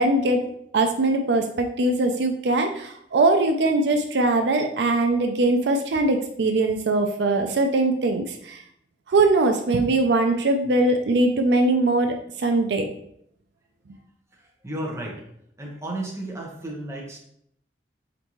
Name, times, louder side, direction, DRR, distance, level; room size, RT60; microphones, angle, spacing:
voice 1, 0.0-8.6 9.1-12.9, right 2 dB, 70° right, 5 dB, 0.4 m, -21 dB
voice 2, 14.3-15.3 15.6-17.2, right 1 dB, 15° right, -2 dB, 0.9 m, -33 dB
4.3 x 3.9 x 3.0 m, 0.70 s
head